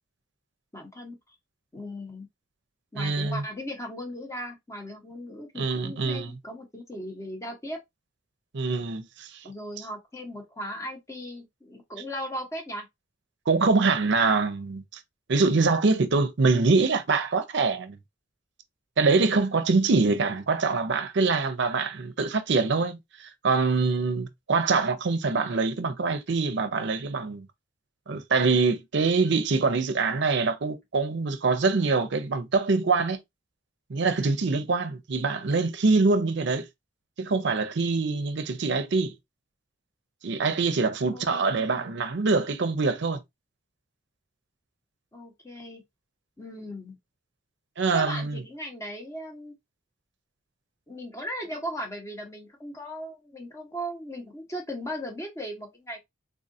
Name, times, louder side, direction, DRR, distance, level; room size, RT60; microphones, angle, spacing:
voice 1, 0.7-1.2 1.7-2.3 2.9-7.8 9.4-12.9 41.1-42.0 45.1-45.8 46.4-47.0 47.9-49.5 50.9-56.0, equal, 15° left, 1.0 m, -37 dB
voice 2, 3.0-3.4 5.6-6.3 8.5-9.3 13.5-14.8 15.3-18.0 19.0-27.5 28.1-33.2 33.9-36.6 37.2-39.1 40.2-43.2 47.8-48.4, right 4 dB, 65° right, 0.6 m, -24 dB
3.6 x 2.4 x 2.6 m
head